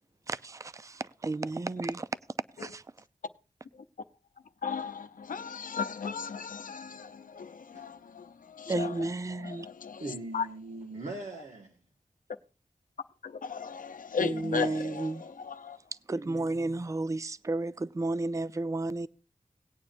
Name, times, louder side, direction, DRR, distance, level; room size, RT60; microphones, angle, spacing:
voice 1, 0.3-2.1 2.6-2.8 8.7-9.7 14.2-15.2 16.1-19.1, right 2 dB, 25° right, 0.4 m, -32 dB
voice 2, 4.6-8.9 9.4-10.0 10.3-10.5 13.2-15.8, left 6 dB, 90° left, 0.7 m, -36 dB
voice 3, 10.0-11.8 16.2-16.7, right 2 dB, 65° right, 1.7 m, -41 dB
18.5 x 8.8 x 2.6 m
cardioid pair, 55°, 14 cm